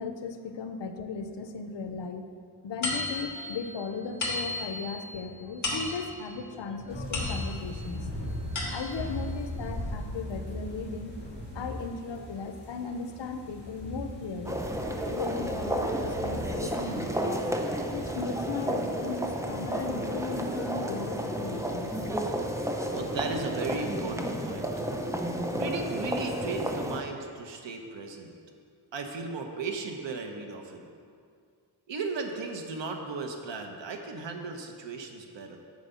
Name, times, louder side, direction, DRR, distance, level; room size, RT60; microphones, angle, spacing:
voice 1, 0.0-2.3 2.6-8.1 8.7-11.1 11.5-14.6 15.1-17.5 17.9-22.0, left 4 dB, 75° left, 7 dB, 0.8 m, -37 dB
sound 1, 2.8-7.8 8.3-9.1, left 2 dB, 40° left, 2.1 m, -35 dB
sound 2, 6.9-23.8, left 1 dB, 25° left, 2.7 m, -40 dB
sound 3, 14.5-27.0, equal, 5° right, 0.6 m, -32 dB
voice 2, 22.9-24.7 25.5-28.4 28.9-30.9 31.9-35.6, right 4 dB, 85° right, 4 dB, 1.1 m, -36 dB
9.4 x 4.9 x 6.8 m, 2.2 s
wide cardioid pair, 120°, 43 cm